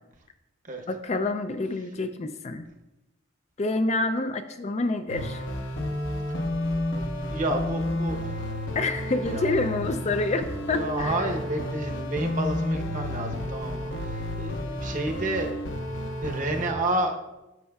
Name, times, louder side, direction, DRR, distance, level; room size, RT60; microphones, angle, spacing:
voice 1, 0.9-2.7 3.6-5.4 8.8-11.2, left 2 dB, 35° left, 8 dB, 0.4 m, -27 dB
sound 1, 5.1-16.7, left 1 dB, 65° left, 0.9 m, -31 dB
voice 2, 7.3-8.5 9.3-10.1 10.7-15.5 16.2-17.2, right 1 dB, 40° right, 3 dB, 0.9 m, -30 dB
10.5 x 7.5 x 2.3 m, 1.0 s
head